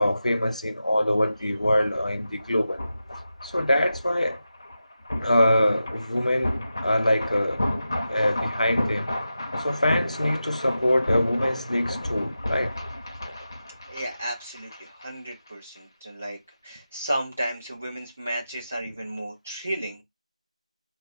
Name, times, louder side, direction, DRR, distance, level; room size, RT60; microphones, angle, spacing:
voice 1, 0.0-2.8 3.4-4.4 5.2-7.6 8.1-9.1 9.6-12.8, left 1 dB, 85° left, 0.9 m, -24 dB
sound 1, 1.3-15.1 15.3-15.5, left 1 dB, 30° left, 0.8 m, -33 dB
voice 2, 13.9-16.4 16.6-20.0, right 1 dB, 10° right, 0.4 m, -33 dB
4.4 x 2.3 x 4.1 m
figure-of-eight pair, 175°, 4 cm